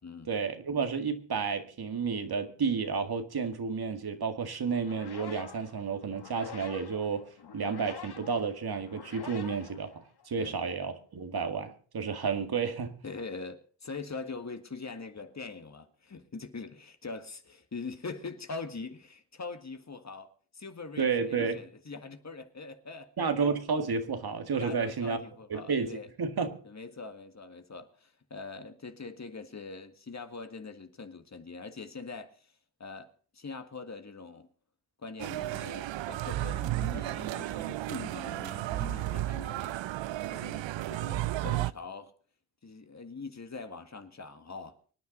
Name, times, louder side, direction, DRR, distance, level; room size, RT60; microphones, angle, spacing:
voice 1, 0.3-7.3 7.5-13.0 21.0-21.6 23.2-25.2 25.5-26.6, right 5 dB, 55° right, 2.0 m, -31 dB
sound 1, 4.7-10.5, left 6 dB, 60° left, 1.7 m, -48 dB
voice 2, 13.0-23.3 24.6-26.1 26.6-32.5 32.8-34.5 35.0-39.8 40.3-42.1 42.6-44.8, left 4 dB, 40° left, 1.8 m, -43 dB
sound 2, 35.2-41.7, right 15 dB, 85° right, 0.6 m, -33 dB
25.0 x 9.6 x 4.0 m
cardioid pair, 70°, 43 cm